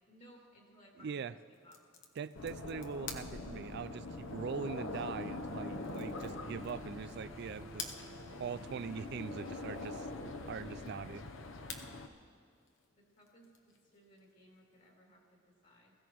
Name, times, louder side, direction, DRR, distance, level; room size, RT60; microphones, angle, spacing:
voice 1, 0.1-1.8 13.0-15.9, equal, 45° left, -2 dB, 2.7 m, -62 dB
voice 2, 1.0-1.3 2.2-7.9 8.2-11.2, right 6 dB, 60° right, 16 dB, 0.4 m, -42 dB
sound 1, 1.5-15.0, left 5 dB, 65° left, 1.0 m, -53 dB
sound 2, 2.3-12.1, left 2 dB, 90° left, 0.8 m, -44 dB
sound 3, 2.5-11.0, right 4 dB, 35° right, 1.5 m, -61 dB
20.5 x 15.5 x 3.1 m, 2.1 s
head